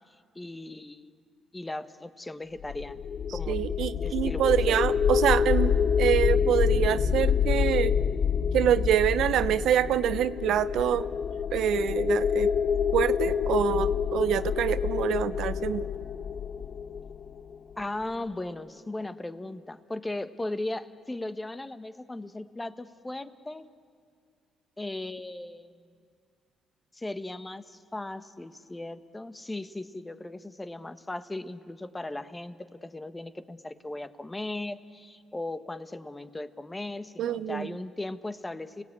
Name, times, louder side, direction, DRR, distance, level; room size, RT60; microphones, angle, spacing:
voice 1, 0.3-1.2 1.5-3.0 3.3-4.8 17.8-23.7 24.8-25.8 26.9-38.8, left 2 dB, 15° left, 11 dB, 1.2 m, -37 dB
sound 1, 2.6-17.7, left 7 dB, 55° left, 0.7 m, -27 dB
voice 2, 3.5-8.0 8.5-11.1 11.5-12.5 12.9-15.9 37.2-37.7, right 10 dB, 80° right, 14 dB, 0.7 m, -26 dB
30.0 x 18.5 x 8.7 m, 2.1 s
cardioid pair, 90°, 0 cm